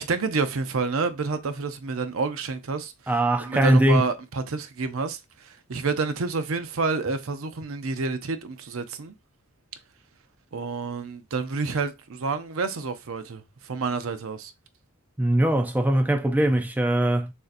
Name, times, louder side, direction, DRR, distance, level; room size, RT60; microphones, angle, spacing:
voice 1, 0.0-2.9 3.4-5.2 5.5-9.1 10.5-14.5, right 4 dB, 65° right, 0.6 m, -29 dB
voice 2, 3.1-4.0 15.2-17.3, right 1 dB, 10° right, 0.4 m, -21 dB
6.4 x 2.8 x 2.5 m
head